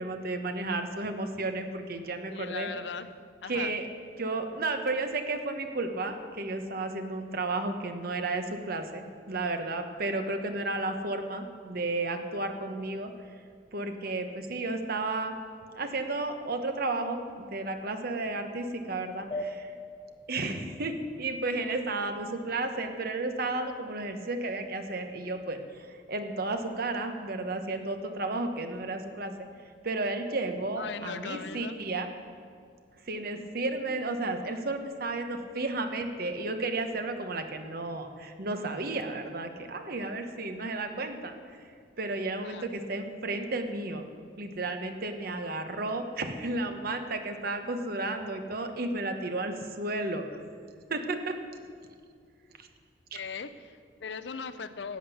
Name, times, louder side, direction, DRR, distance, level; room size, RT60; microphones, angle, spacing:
voice 1, 0.0-2.7 3.5-3.9 4.2-13.1 13.7-15.3 15.7-19.7 20.3-29.5 29.8-32.1 33.0-41.7 42.0-44.1 44.4-50.2 50.9-51.4 52.6-52.7 53.1-53.2, right 2 dB, 55° right, 7 dB, 1.1 m, -33 dB
voice 2, 2.3-3.1 3.4-3.7 30.8-31.8 42.4-42.7 53.1-55.0, left 5 dB, 70° left, 12 dB, 0.6 m, -39 dB
sound 1, 19.3-22.3, left 1 dB, 25° left, 0.7 m, -41 dB
13.5 x 8.9 x 7.1 m, 2.1 s
head